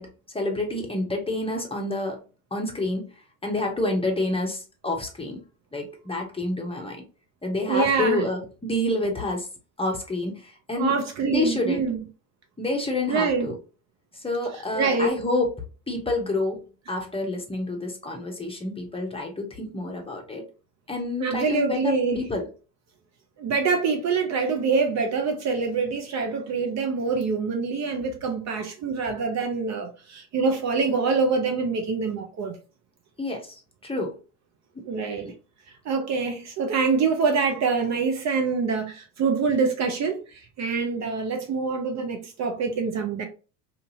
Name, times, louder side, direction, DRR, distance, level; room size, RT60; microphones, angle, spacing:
voice 1, 0.0-2.2 2.5-3.1 3.4-5.4 5.7-7.0 7.4-9.5 9.8-10.9 11.3-11.8 12.6-13.5 14.1-15.5 15.9-20.4 20.9-22.5 33.2-33.5 33.8-34.2 34.7-34.8 35.2-35.3, left 2 dB, 15° left, 0.8 m, -28 dB
voice 2, 7.6-8.2 10.8-12.0 13.1-13.5 14.7-15.1 21.2-22.2 23.4-32.6 34.8-35.3 35.8-43.3, right 4 dB, 40° right, 0.7 m, -25 dB
2.6 x 2.5 x 2.7 m
hypercardioid pair, 65°, 42 cm